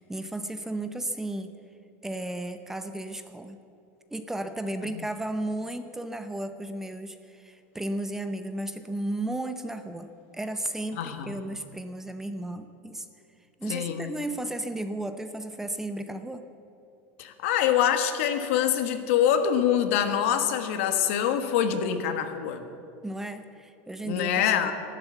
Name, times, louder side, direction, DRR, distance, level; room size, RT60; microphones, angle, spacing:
voice 1, 0.0-1.5 2.0-3.6 4.1-13.1 13.6-16.4 23.0-24.7, right 1 dB, 5° right, 9 dB, 0.7 m, -34 dB
voice 2, 11.0-11.4 13.7-14.1 17.2-22.7 24.0-24.7, left 9 dB, 70° left, 8 dB, 1.5 m, -25 dB
14.5 x 11.5 x 8.0 m, 2.5 s
supercardioid pair, 150°, 7 cm